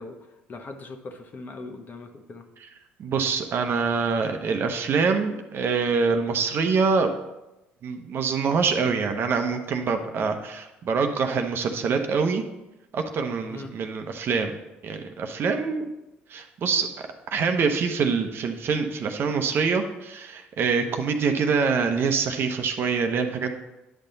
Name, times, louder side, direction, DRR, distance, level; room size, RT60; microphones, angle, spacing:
voice 1, 0.0-2.5 13.5-13.7 20.8-21.0, left 3 dB, 40° left, 5 dB, 1.2 m, -40 dB
voice 2, 3.0-7.1 7.8-12.4 12.9-14.5 14.8-15.9 16.3-16.9 17.3-23.5, right 5 dB, 50° right, 6 dB, 0.9 m, -25 dB
10.0 x 5.7 x 4.0 m, 0.97 s
supercardioid pair, 75°, 5 cm